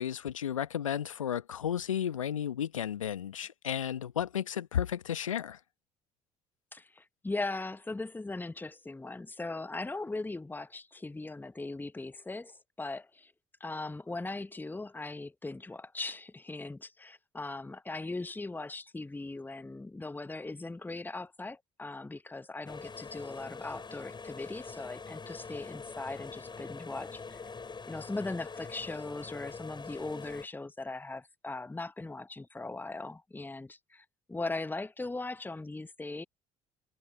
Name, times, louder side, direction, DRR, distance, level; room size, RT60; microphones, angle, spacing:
voice 1, 0.0-5.6, left 9 dB, 85° left, 1.3 m, -33 dB
voice 2, 6.7-13.3 13.6-27.4 27.9-36.2, left 2 dB, 10° left, 1.0 m, -39 dB
sound 1, 22.7-30.5, left 4 dB, 30° left, 6.3 m, -44 dB
figure-of-eight pair, 50°, 17 cm